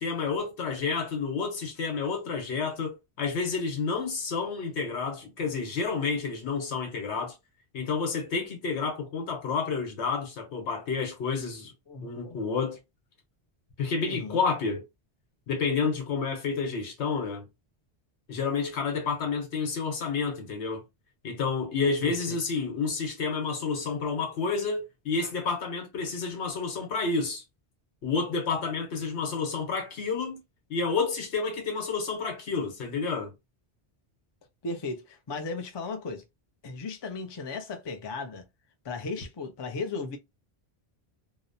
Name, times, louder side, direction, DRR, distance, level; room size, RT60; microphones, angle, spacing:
voice 1, 0.0-7.3 7.7-11.7 12.0-12.8 13.8-14.8 15.5-17.5 18.3-20.8 21.2-27.4 28.0-30.4 30.7-33.3, left 4 dB, 90° left, 1.2 m, -30 dB
voice 2, 11.9-12.4 14.0-14.4 22.0-22.4 34.6-36.2 36.6-38.5 38.8-40.2, left 3 dB, 45° left, 0.3 m, -36 dB
2.8 x 2.0 x 2.6 m
omnidirectional pair, 1.1 m